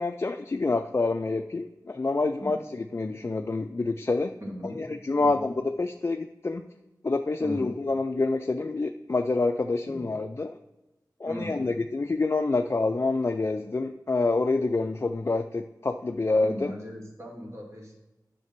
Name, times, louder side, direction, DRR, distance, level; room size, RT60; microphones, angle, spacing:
voice 1, 0.0-2.6 2.9-4.3 4.6-6.7 7.0-10.6 11.2-16.7, left 3 dB, 35° left, 6 dB, 0.3 m, -27 dB
voice 2, 4.4-4.8 5.2-5.4 7.4-7.7 11.3-11.7 16.4-18.0, equal, 40° right, -2 dB, 2.3 m, -38 dB
9.2 x 3.4 x 6.0 m, 1.0 s
cardioid pair, 45°, 8 cm